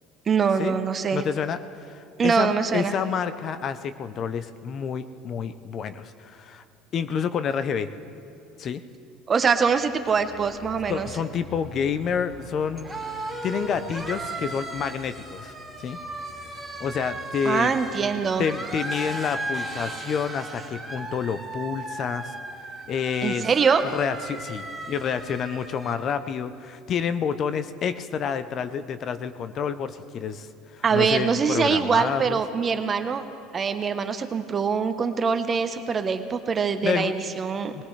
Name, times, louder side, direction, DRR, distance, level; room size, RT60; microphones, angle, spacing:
voice 1, 0.3-1.2 2.2-2.9 9.3-11.1 17.4-18.5 23.2-23.8 30.8-33.2 33.5-37.7, right 6 dB, 30° right, 9 dB, 0.9 m, -23 dB
voice 2, 1.1-6.6 6.9-7.9 8.6-8.8 10.9-12.9 13.4-16.0 16.8-17.7 18.4-22.3 22.9-23.5 23.9-30.5 30.7-32.4 36.8-37.1 37.7-37.8, left 7 dB, 40° left, 12 dB, 0.6 m, -29 dB
sound 1, 9.5-26.0, right 2 dB, 5° right, 3.0 m, -37 dB
20.0 x 18.0 x 3.3 m, 2.6 s
supercardioid pair, 115°, 0 cm